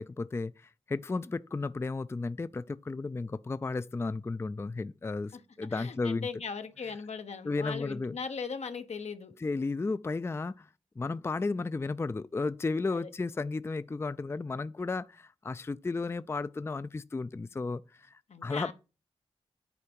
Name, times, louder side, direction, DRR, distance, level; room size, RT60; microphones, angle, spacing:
voice 1, 0.0-6.3 7.4-8.2 9.4-10.7 11.0-18.7, left 3 dB, 25° left, 0.3 m, -34 dB
voice 2, 5.7-9.3 12.9-13.1 18.3-18.7, left 5 dB, 85° left, 1.0 m, -39 dB
8.4 x 4.6 x 5.2 m
wide cardioid pair, 70°, 11 cm